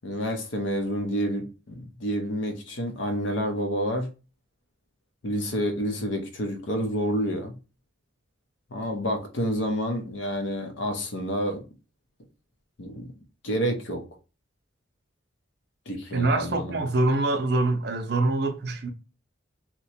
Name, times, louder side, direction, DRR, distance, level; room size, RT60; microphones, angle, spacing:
voice 1, 0.0-4.1 5.2-7.5 8.7-11.6 12.8-13.1 13.4-14.0 15.9-16.8, equal, 70° left, 0.7 m, -29 dB
voice 2, 16.1-18.9, right 2 dB, 50° right, 0.5 m, -24 dB
2.9 x 2.2 x 4.1 m
head